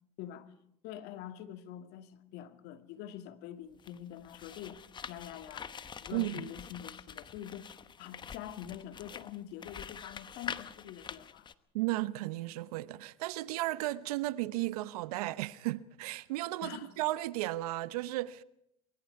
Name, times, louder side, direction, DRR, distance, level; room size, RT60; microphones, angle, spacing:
voice 1, 0.2-0.5 0.8-5.7 6.0-7.7 8.0-11.5 16.6-16.9, left 11 dB, 60° left, 2.1 m, -45 dB
sound 1, 3.7-11.5, left 7 dB, 25° left, 1.0 m, -45 dB
voice 2, 6.1-6.5 11.7-18.4, right 17 dB, 80° right, 0.9 m, -34 dB
24.0 x 23.5 x 4.8 m
supercardioid pair, 110°, 19 cm